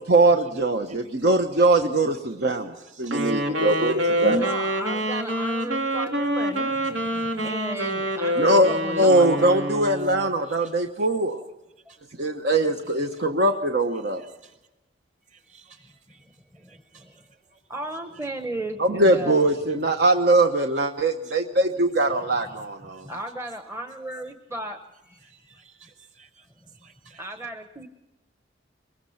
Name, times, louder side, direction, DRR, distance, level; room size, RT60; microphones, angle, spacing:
voice 1, 0.1-4.4 8.4-8.7 9.0-11.4 12.2-14.2 18.8-23.1, right 2 dB, 60° right, 5 dB, 1.1 m, -21 dB
voice 2, 2.9-3.3 10.6-10.7 11.9-12.0 14.4-14.5 15.5-15.8 16.1-16.2 16.7-17.0 25.5-26.4 26.8-27.2, right 6 dB, 40° right, 4 dB, 4.9 m, -52 dB
Wind instrument woodwind instrument, 3.0-10.3, equal, 85° right, 3.0 m, -26 dB
voice 3, 4.0-9.6 15.7-15.9 16.5-17.2 17.7-19.4 22.3-22.6 22.9-24.8 25.1-25.6 27.2-27.9, right 1 dB, 15° right, 5 dB, 1.1 m, -35 dB
24.0 x 22.0 x 5.8 m, 1.0 s
head